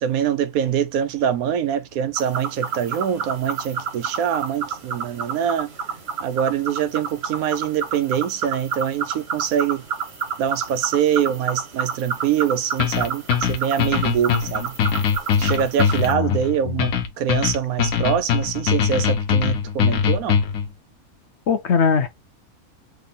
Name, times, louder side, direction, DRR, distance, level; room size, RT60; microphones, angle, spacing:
voice 1, 0.0-5.7 6.2-9.8 10.4-14.8 15.4-20.4, right 9 dB, 80° right, 1.1 m, -24 dB
sound 1, 2.2-16.1, right 6 dB, 50° right, 1.5 m, -30 dB
sound 2, 12.8-20.7, left 7 dB, 85° left, 1.2 m, -21 dB
voice 2, 16.0-16.4 16.7-16.8 21.5-22.1, left 6 dB, 60° left, 0.9 m, -20 dB
4.0 x 3.3 x 3.6 m
omnidirectional pair, 1.5 m